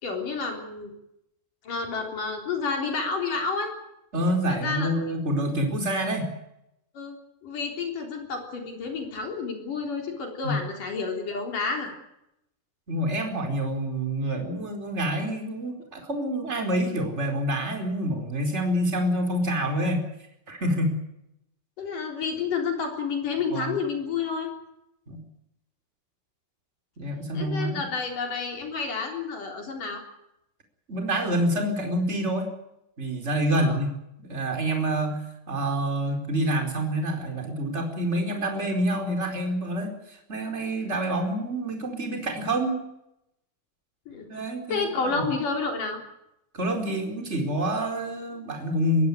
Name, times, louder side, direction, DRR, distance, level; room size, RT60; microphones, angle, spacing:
voice 1, 0.0-0.9 1.6-3.7 4.5-4.9 6.9-7.2 7.4-11.9 21.8-24.5 27.3-30.0 33.6-33.8 44.1-44.3 44.7-46.0, left 4 dB, 45° left, 3 dB, 4.9 m, -30 dB
voice 2, 4.1-6.3 10.4-10.6 12.9-20.1 20.5-21.0 23.5-23.8 25.1-25.2 27.0-27.8 30.9-32.5 33.0-33.9 34.2-42.8 44.3-44.9 45.2-45.3 46.5-49.1, right 1 dB, 15° right, 4 dB, 4.1 m, -27 dB
22.5 x 16.0 x 9.6 m, 0.83 s
omnidirectional pair, 5.8 m